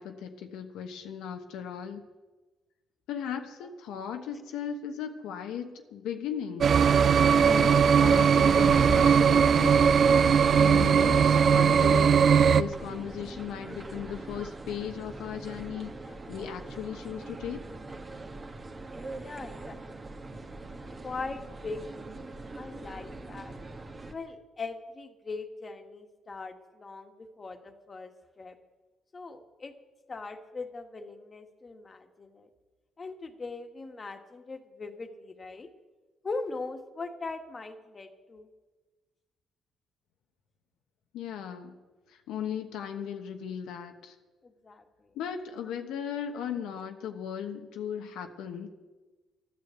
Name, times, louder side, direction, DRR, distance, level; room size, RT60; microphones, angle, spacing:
voice 1, 0.0-2.0 3.1-6.8 7.4-9.8 10.5-15.9 16.3-17.6 41.1-41.7 42.1-44.1 45.1-48.7, left 8 dB, 90° left, 5 dB, 1.1 m, -37 dB
sound 1, 6.6-12.6, right 7 dB, 55° right, 0.5 m, -20 dB
sound 2, 8.7-24.1, right 2 dB, 30° right, 1.5 m, -41 dB
voice 2, 19.2-19.8 20.2-20.5 21.0-22.2 22.5-23.5 24.1-28.1 28.4-28.6 29.1-29.7 30.1-32.5 33.0-35.7 36.2-38.5 44.4-45.1, left 3 dB, 35° left, 6 dB, 1.6 m, -40 dB
13.0 x 10.0 x 8.0 m, 1.3 s
cardioid pair, 90°, 0 cm